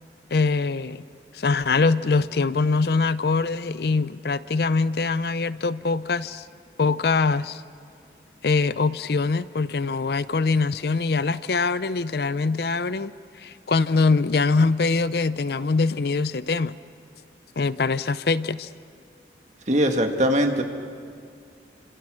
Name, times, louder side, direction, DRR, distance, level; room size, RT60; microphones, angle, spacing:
voice 1, 0.3-1.0 1.3-6.5 6.8-7.6 8.4-16.8 17.6-18.7, left 4 dB, 60° left, 16 dB, 0.5 m, -23 dB
voice 2, 19.7-20.6, equal, 40° right, 4 dB, 1.7 m, -21 dB
29.5 x 26.0 x 6.2 m, 2.3 s
head